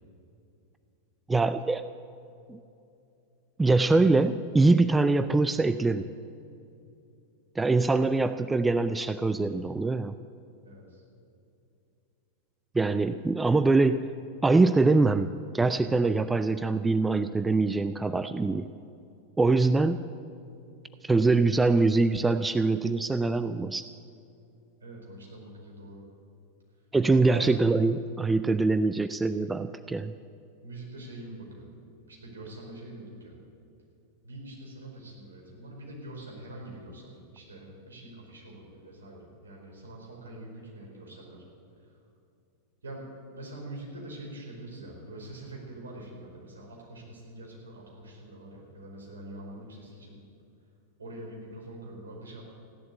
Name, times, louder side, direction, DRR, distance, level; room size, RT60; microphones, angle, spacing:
voice 1, 1.3-1.9 2.5-2.6 3.6-6.1 7.6-10.2 12.7-14.1 14.4-18.7 19.4-20.0 21.0-23.8 26.9-30.1, right 3 dB, 10° right, 11 dB, 0.4 m, -23 dB
voice 2, 24.8-26.0 27.1-27.5 30.6-31.7 32.1-33.3 34.2-41.4 42.8-50.2 51.0-52.4, right 1 dB, 70° right, -2 dB, 4.7 m, -44 dB
15.5 x 11.0 x 8.3 m, 2.6 s
figure-of-eight pair, 90°, 0 cm